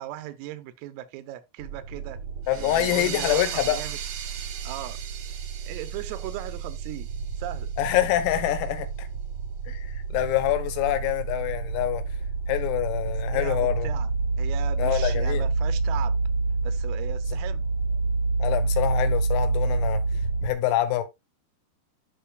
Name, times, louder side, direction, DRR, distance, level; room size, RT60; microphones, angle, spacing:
voice 1, 0.0-2.2 2.5-4.0 4.6-5.0 5.7-7.1 7.4-7.7 13.3-14.1 14.4-16.2 16.6-17.7, right 14 dB, 85° right, 3.4 m, -38 dB
sound 1, 1.6-20.5, right 3 dB, 35° right, 4.5 m, -28 dB
voice 2, 2.5-3.8 7.8-9.1 9.7-12.0 12.5-13.9 14.8-15.4 18.4-20.0 20.4-21.0, left 13 dB, 90° left, 3.8 m, -26 dB
sound 2, 2.5-7.8, right 9 dB, 65° right, 2.7 m, -38 dB
13.0 x 5.4 x 2.3 m
omnidirectional pair, 5.9 m